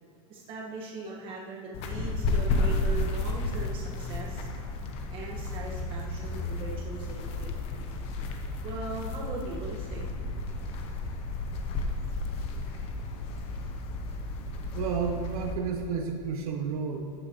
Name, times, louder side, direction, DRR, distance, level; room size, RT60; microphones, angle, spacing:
voice 1, 0.3-4.5 5.1-7.6 8.6-10.1, right 3 dB, 25° right, -3 dB, 1.7 m, -39 dB
sound 1, 1.7-15.5, left 2 dB, 30° left, 0.9 m, -32 dB
voice 2, 14.7-17.1, right 6 dB, 75° right, 4 dB, 0.9 m, -31 dB
14.0 x 9.0 x 3.1 m, 2.5 s
supercardioid pair, 170°, 19 cm